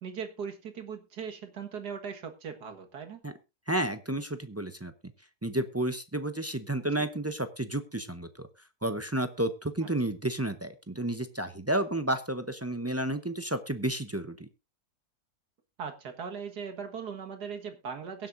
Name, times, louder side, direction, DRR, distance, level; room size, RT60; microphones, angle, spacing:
voice 1, 0.0-3.2 7.0-7.1 9.8-9.9 15.8-18.3, right 6 dB, 80° right, 6 dB, 2.1 m, -39 dB
voice 2, 3.7-4.9 5.4-8.5 8.8-14.5, right 1 dB, 25° right, 8 dB, 0.3 m, -31 dB
22.5 x 7.7 x 2.6 m, 0.26 s
omnidirectional pair, 1.7 m